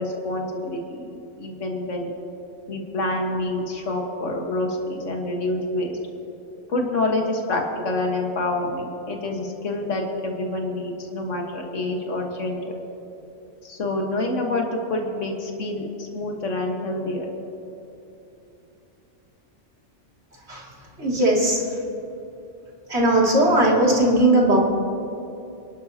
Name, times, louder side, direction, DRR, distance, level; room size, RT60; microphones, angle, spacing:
voice 1, 0.0-2.1 2.7-6.0 6.7-12.7 13.6-17.3, left 2 dB, 85° left, 1 dB, 1.9 m, -27 dB
voice 2, 21.0-21.6 22.9-24.6, right 1 dB, 60° right, -3 dB, 2.9 m, -18 dB
28.0 x 12.0 x 2.9 m, 2.9 s
omnidirectional pair, 1.2 m